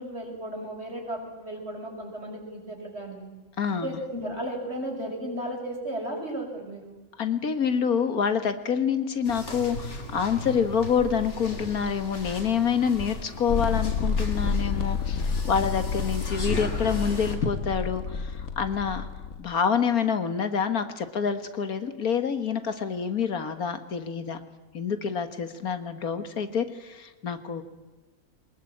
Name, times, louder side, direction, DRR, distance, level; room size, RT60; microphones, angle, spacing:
voice 1, 0.0-3.2 3.8-7.0, right 1 dB, 45° right, 1 dB, 6.4 m, -35 dB
voice 2, 3.6-3.9 7.2-19.1 19.4-24.4 24.7-27.6, left 7 dB, 85° left, 10 dB, 2.2 m, -27 dB
sound 1, 9.2-17.4, left 1 dB, 50° left, 3.5 m, -38 dB
sound 2, 13.5-19.4, left 5 dB, 70° left, 1.7 m, -29 dB
24.0 x 20.5 x 8.8 m, 1.2 s
omnidirectional pair, 1.5 m